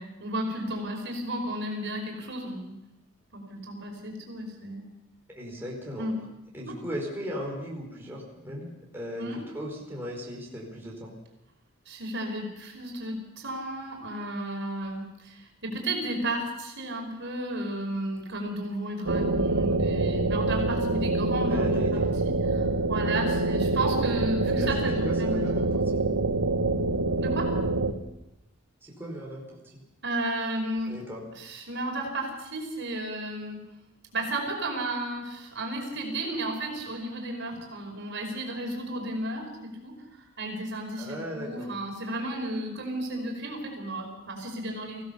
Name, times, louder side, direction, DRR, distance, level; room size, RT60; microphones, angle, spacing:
voice 1, 0.0-2.7 3.3-4.9 6.0-6.2 6.7-6.8 9.2-9.4 11.9-25.5 27.2-27.5 30.0-30.9 31.4-33.6 34.1-45.0, right 1 dB, 60° right, 1 dB, 5.3 m, -33 dB
voice 2, 5.3-6.1 6.5-11.1 21.5-22.1 24.5-26.0 28.8-29.8 30.9-31.2 41.0-41.7, equal, 10° right, -3 dB, 5.1 m, -37 dB
sound 1, 19.1-27.9, right 2 dB, 85° right, 1.7 m, -26 dB
24.0 x 16.5 x 7.1 m, 0.87 s
head